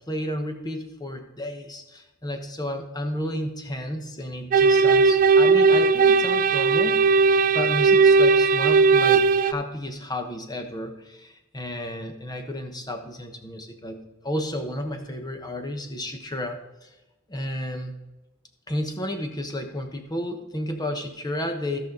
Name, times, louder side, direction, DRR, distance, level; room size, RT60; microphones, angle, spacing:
voice 1, 0.1-16.9 17.3-18.0 18.7-21.8, left 1 dB, 20° left, 5 dB, 1.1 m, -32 dB
sound 1, 4.5-9.5, right 4 dB, 40° right, 0.3 m, -17 dB
16.0 x 5.7 x 3.9 m, 1.0 s
head